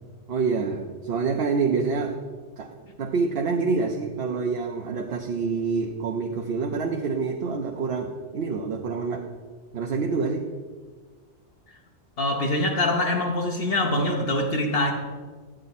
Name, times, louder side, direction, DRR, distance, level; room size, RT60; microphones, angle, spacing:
voice 1, 0.3-2.2 2.6-9.2 9.7-10.4, right 4 dB, 60° right, 2 dB, 0.9 m, -27 dB
voice 2, 12.2-14.9, left 1 dB, 60° left, 2 dB, 1.0 m, -24 dB
9.2 x 7.6 x 4.1 m, 1.5 s
omnidirectional pair, 1.2 m